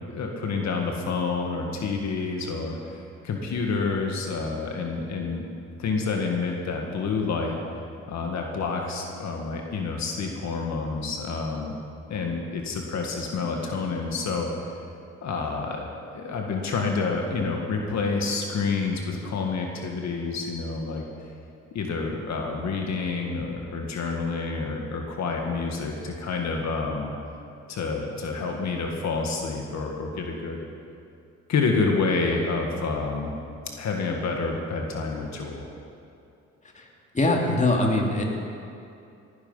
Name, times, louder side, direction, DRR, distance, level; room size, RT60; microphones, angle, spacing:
voice 1, 0.1-5.4 5.8-7.6 8.1-11.7 12.1-14.7 15.2-21.3 21.7-27.1 27.7-30.7 31.5-33.3 33.8-35.7, left 4 dB, 65° left, 1 dB, 2.0 m, -28 dB
voice 2, 37.1-38.2, left 2 dB, 25° left, 0 dB, 2.5 m, -22 dB
18.5 x 11.0 x 5.7 m, 2.6 s
cardioid pair, 90°, 30 cm